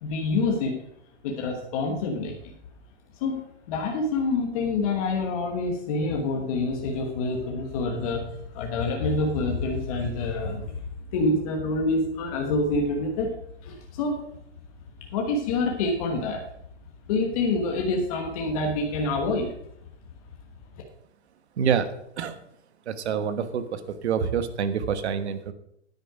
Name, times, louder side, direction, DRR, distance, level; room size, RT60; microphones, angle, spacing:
voice 1, 0.0-0.8 1.2-2.5 3.2-10.8 11.1-13.3 13.6-14.2 15.1-16.4 17.1-19.5, left 3 dB, 30° left, 1 dB, 1.3 m, -27 dB
voice 2, 21.6-22.4 22.9-25.5, right 7 dB, 65° right, 11 dB, 1.3 m, -27 dB
9.7 x 9.6 x 5.0 m, 0.72 s
hypercardioid pair, 170°, 35 cm